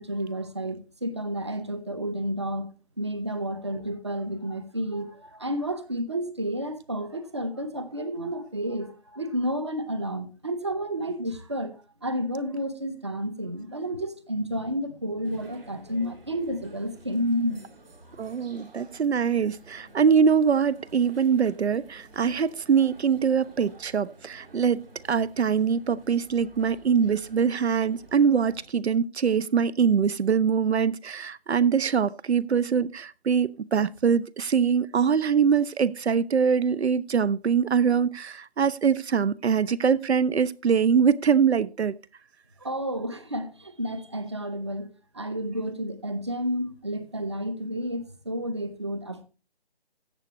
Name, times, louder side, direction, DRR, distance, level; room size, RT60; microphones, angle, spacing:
voice 1, 0.0-2.7 3.0-17.6 42.6-49.2, equal, 25° right, 0.7 m, -31 dB
sound 1, 15.2-28.7, right 2 dB, 60° right, 3.3 m, -52 dB
voice 2, 18.2-42.0, right 6 dB, 80° right, 0.6 m, -23 dB
14.0 x 7.9 x 3.0 m
figure-of-eight pair, 170°, 32 cm